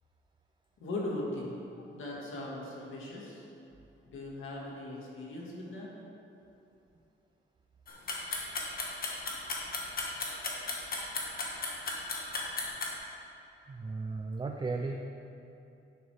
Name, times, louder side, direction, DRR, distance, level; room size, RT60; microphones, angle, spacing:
voice 1, 0.8-3.5 4.1-5.9, left 1 dB, 85° left, -4 dB, 1.9 m, -39 dB
sound 1, 7.9-12.9, left 3 dB, 50° left, 1.3 m, -34 dB
voice 2, 13.7-15.0, right 3 dB, 25° right, 3 dB, 0.4 m, -35 dB
10.5 x 6.9 x 3.4 m, 2.8 s
wide cardioid pair, 145°, 20 cm